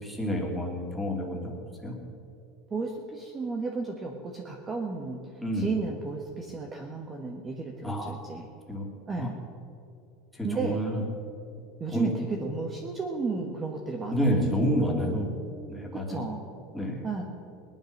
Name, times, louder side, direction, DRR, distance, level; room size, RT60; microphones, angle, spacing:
voice 1, 0.0-1.5 1.8-1.9 5.4-5.7 7.8-8.2 8.7-8.9 9.2-9.3 10.3-11.0 11.9-12.1 14.1-15.3 15.7-16.2 16.7-17.0, equal, ahead, -1 dB, 2.8 m, -29 dB
voice 2, 2.7-5.2 5.5-8.5 9.1-9.4 10.4-10.8 11.8-14.3 14.6-15.2 15.9-16.4 17.0-17.2, right 4 dB, 20° right, 1 dB, 1.4 m, -33 dB
18.5 x 11.5 x 6.6 m, 2.6 s
supercardioid pair, 140°, 0 cm